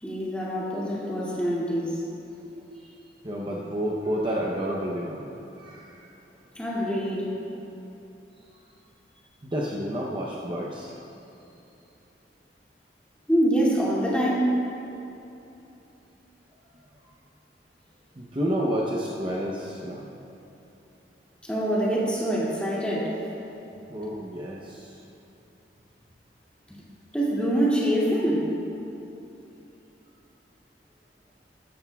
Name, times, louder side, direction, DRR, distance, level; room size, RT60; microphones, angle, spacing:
voice 1, 0.0-2.0 6.5-7.3 13.3-14.5 21.4-23.1 26.7-26.8 27.1-28.5, right 1 dB, 5° left, -7 dB, 2.4 m, -25 dB
voice 2, 3.2-5.3 5.6-6.1 9.4-10.9 18.2-20.0 23.9-25.0, equal, 25° right, -3 dB, 0.8 m, -30 dB
15.5 x 13.0 x 2.3 m, 2.9 s
head